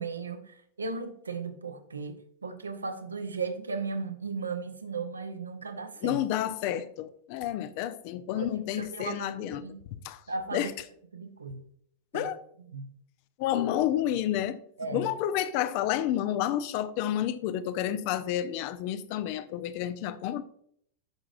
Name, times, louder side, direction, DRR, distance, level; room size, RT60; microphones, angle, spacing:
voice 1, 0.0-6.2 8.4-9.8 10.3-10.7 11.1-11.6 12.1-12.3 12.6-12.9 14.8-15.1, right 4 dB, 75° right, 0.8 m, -36 dB
voice 2, 6.0-9.6 10.0-10.2 10.5-10.7 12.1-12.4 13.4-14.6 14.9-20.4, left 11 dB, 45° left, 0.5 m, -30 dB
10.5 x 6.1 x 2.4 m
figure-of-eight pair, 90°, 0 cm